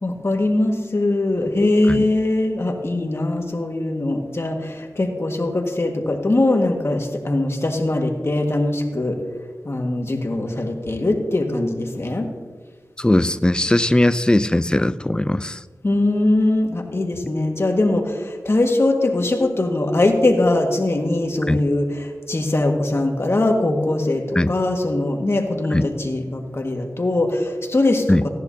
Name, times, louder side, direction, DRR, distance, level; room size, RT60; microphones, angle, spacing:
voice 1, 0.0-9.2 9.7-12.3 15.8-28.3, left 2 dB, 45° left, 2 dB, 1.7 m, -21 dB
voice 2, 13.0-15.6 21.5-21.6 24.4-24.5 25.7-25.9 28.1-28.3, left 1 dB, 15° left, 14 dB, 0.4 m, -19 dB
16.0 x 10.5 x 2.8 m, 1.4 s
cardioid pair, 50°, 6 cm